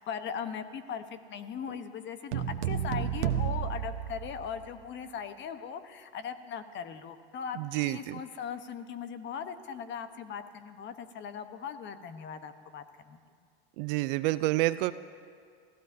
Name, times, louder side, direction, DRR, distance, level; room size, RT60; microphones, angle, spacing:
voice 1, 0.0-13.2, left 7 dB, 35° left, 10 dB, 1.0 m, -39 dB
sound 1, 2.3-4.9, right 9 dB, 75° right, 1.1 m, -32 dB
voice 2, 7.6-8.2 13.8-14.9, right 19 dB, 55° right, 15 dB, 0.5 m, -28 dB
28.5 x 15.5 x 2.7 m, 2.1 s
hypercardioid pair, 105°, 34 cm